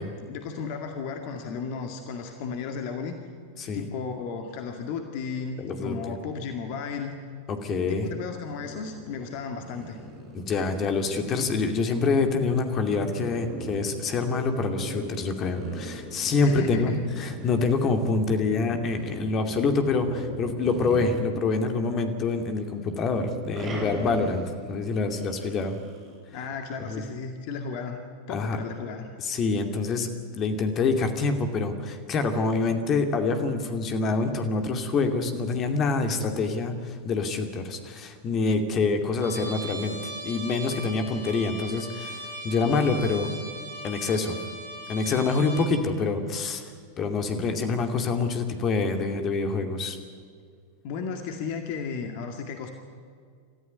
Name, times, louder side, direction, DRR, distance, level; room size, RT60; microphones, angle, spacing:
voice 1, 0.0-3.2 3.7-7.2 8.0-10.0 16.4-17.0 26.3-28.0 28.3-29.1 50.8-52.7, left 5 dB, 45° left, 5 dB, 2.1 m, -34 dB
voice 2, 5.6-6.2 7.5-8.1 10.3-25.8 26.9-27.0 28.3-28.6 29.2-30.1 30.4-43.3 43.8-44.4 44.9-46.6 47.0-50.0, left 4 dB, 30° left, 6 dB, 2.5 m, -26 dB
sound 1, 8.2-21.9 22.2-26.2, right 1 dB, 30° right, 6.8 m, -40 dB
Trumpet, 39.2-45.7, right 1 dB, 80° left, 6.8 m, -39 dB
28.0 x 14.5 x 9.6 m, 2.1 s
figure-of-eight pair, 90°, 0 cm